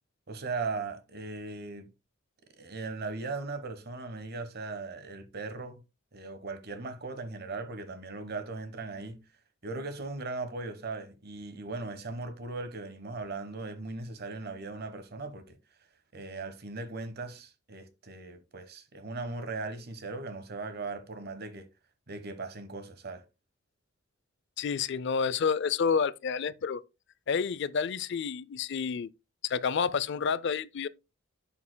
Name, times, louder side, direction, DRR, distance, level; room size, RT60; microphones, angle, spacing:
voice 1, 0.3-1.9 2.6-5.8 6.1-9.2 9.6-15.6 16.1-21.6 22.1-23.2, right 3 dB, 50° right, 1.2 m, -38 dB
voice 2, 24.6-26.8 27.3-29.1 29.4-30.9, left 6 dB, 55° left, 0.4 m, -29 dB
11.0 x 7.2 x 2.2 m
head